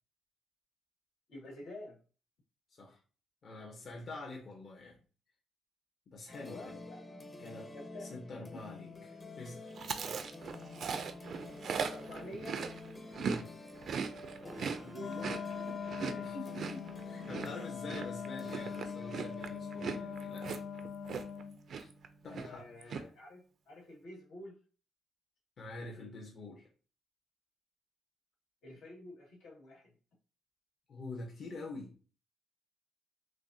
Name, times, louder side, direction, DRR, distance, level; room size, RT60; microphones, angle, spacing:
voice 1, 1.3-2.0 6.5-7.4 7.7-8.1 8.5-8.6 11.8-12.6 14.4-15.3 16.0-16.4 22.3-24.6 28.6-29.9, left 1 dB, 90° left, -3 dB, 2.0 m, -49 dB
voice 2, 3.4-5.0 6.1-6.8 7.4-7.7 8.0-9.7 13.2-13.5 16.2-20.6 21.7-21.9 22.2-22.7 25.6-26.7 30.9-32.0, left 2 dB, 50° left, -1 dB, 1.0 m, -46 dB
sound 1, 6.3-22.9, left 3 dB, 20° left, 0.7 m, -50 dB
Chewing mastication, 9.8-13.4 13.7-21.4 21.7-22.1 22.3-23.0, right 6 dB, 60° right, 0.5 m, -39 dB
Wind instrument woodwind instrument, 15.0-21.6, left 6 dB, 70° left, 0.4 m, -42 dB
6.2 x 2.2 x 2.7 m, 0.38 s
cardioid pair, 105°, 0 cm